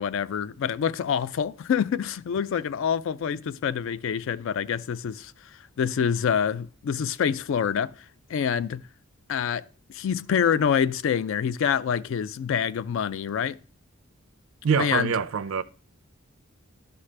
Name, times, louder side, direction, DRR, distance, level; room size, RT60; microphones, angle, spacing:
voice 1, 0.0-5.3 5.8-7.9 8.3-8.8 9.3-9.6 9.9-13.6 14.8-15.1, left 7 dB, 65° left, 0.3 m, -26 dB
voice 2, 14.6-15.6, right 6 dB, 75° right, 0.4 m, -24 dB
11.5 x 5.7 x 3.2 m
head